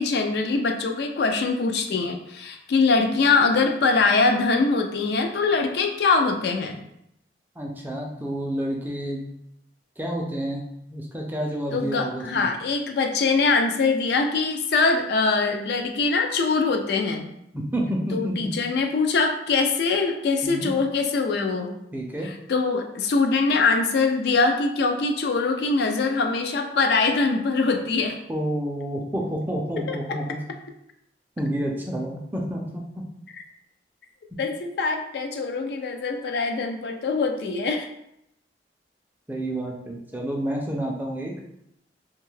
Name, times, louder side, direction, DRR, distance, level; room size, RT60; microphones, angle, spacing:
voice 1, 0.0-6.9 11.7-17.3 18.1-21.7 22.2-28.2 29.9-30.0 34.4-37.9, left 4 dB, 60° left, 5 dB, 0.3 m, -23 dB
voice 2, 7.6-9.3 10.0-12.5 17.5-18.5 20.4-20.7 21.9-22.3 28.3-30.4 31.4-33.0 39.3-41.3, right 1 dB, 10° right, -1 dB, 0.4 m, -29 dB
2.6 x 2.3 x 3.1 m, 0.78 s
head